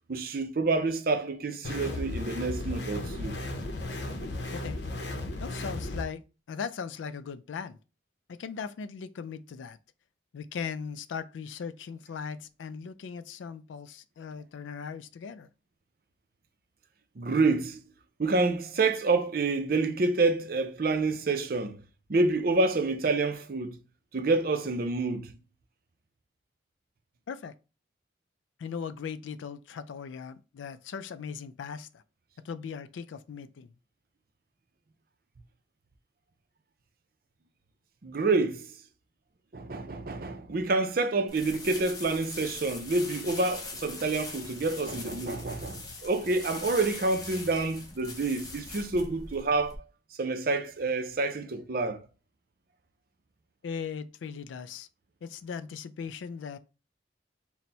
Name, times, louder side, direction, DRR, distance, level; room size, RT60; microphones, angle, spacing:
voice 1, 0.1-3.4 17.2-17.8 18.2-21.8 22.1-23.8 24.1-25.4 38.0-38.7 39.5-49.8 50.1-52.0, right 3 dB, 50° right, 0.5 m, -28 dB
sound 1, 1.6-6.0, left 2 dB, 70° left, 0.7 m, -35 dB
voice 2, 5.4-7.8 8.3-9.8 10.3-15.5 27.3-27.5 28.6-32.0 32.4-33.7 53.6-54.9 55.2-56.6, left 6 dB, 90° left, 0.3 m, -39 dB
sound 2, 41.3-49.8, left 3 dB, 20° left, 0.6 m, -42 dB
4.3 x 2.1 x 4.0 m
head